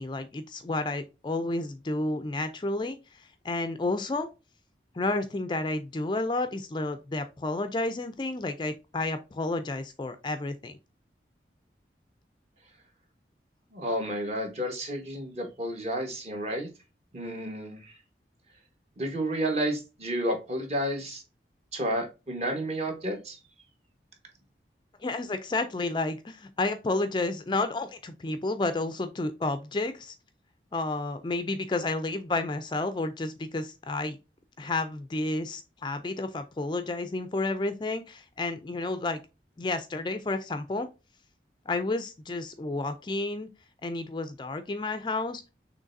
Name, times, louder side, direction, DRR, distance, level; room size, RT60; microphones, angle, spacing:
voice 1, 0.0-4.3 4.9-10.8 25.0-30.1 30.7-34.2 34.6-39.2 39.6-40.9 41.7-43.5 43.8-45.4, left 2 dB, 25° left, 9 dB, 0.4 m, -31 dB
voice 2, 13.7-16.7 17.1-18.0 19.0-21.2 21.7-23.4, right 1 dB, 35° right, 2 dB, 1.3 m, -31 dB
6.3 x 3.2 x 2.6 m, 0.28 s
head